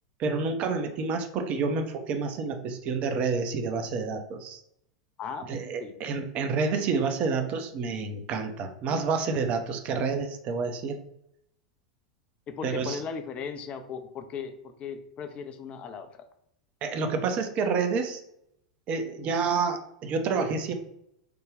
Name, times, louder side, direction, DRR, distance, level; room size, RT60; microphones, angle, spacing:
voice 1, 0.2-4.6 5.5-11.0 12.6-13.0 16.8-18.2 18.9-20.7, right 4 dB, 40° right, 6 dB, 0.6 m, -29 dB
voice 2, 12.5-16.1, left 6 dB, 35° left, 7 dB, 0.5 m, -37 dB
3.4 x 2.2 x 3.2 m, 0.74 s
figure-of-eight pair, 90°, 4 cm